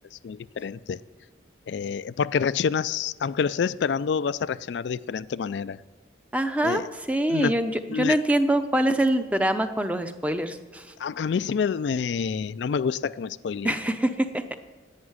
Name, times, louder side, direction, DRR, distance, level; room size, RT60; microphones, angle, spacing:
voice 1, 0.1-1.0 1.7-5.8 6.6-6.9 7.3-7.6 7.9-8.2 11.0-13.7, left 6 dB, 80° left, 15 dB, 0.4 m, -27 dB
voice 2, 6.3-6.8 7.1-7.7 8.0-10.8 13.6-14.5, right 1 dB, 10° right, 8 dB, 0.6 m, -24 dB
11.0 x 8.8 x 9.6 m, 1.3 s
head